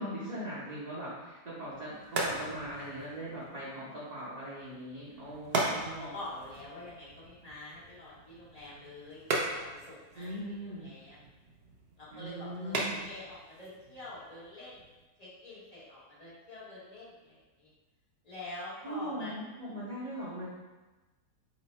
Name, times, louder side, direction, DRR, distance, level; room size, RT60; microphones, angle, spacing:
voice 1, 0.0-6.1 10.1-10.9 12.1-13.1 18.8-20.5, right 1 dB, 40° right, -11 dB, 0.6 m, -40 dB
sound 1, 1.6-15.1, right 2 dB, 85° right, 0.5 m, -39 dB
voice 2, 5.5-11.2 12.0-14.8 15.2-17.7 18.2-19.3, left 2 dB, 30° left, -9 dB, 0.8 m, -46 dB
3.1 x 2.0 x 4.1 m, 1.2 s
omnidirectional pair, 1.7 m